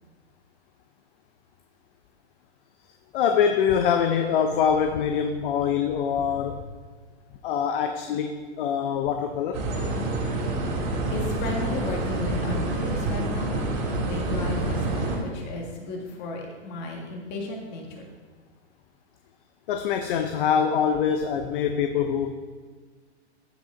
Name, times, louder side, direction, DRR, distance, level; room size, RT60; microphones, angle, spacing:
voice 1, 3.1-6.6 7.4-9.6 19.7-22.3, left 7 dB, 50° left, 6 dB, 0.7 m, -24 dB
sound 1, 9.5-15.2, right 2 dB, 45° right, 2.6 m, -27 dB
voice 2, 11.1-13.6 14.1-18.1, left 3 dB, 30° left, 0 dB, 1.8 m, -34 dB
14.5 x 5.1 x 3.8 m, 1.5 s
hypercardioid pair, 140°, 35 cm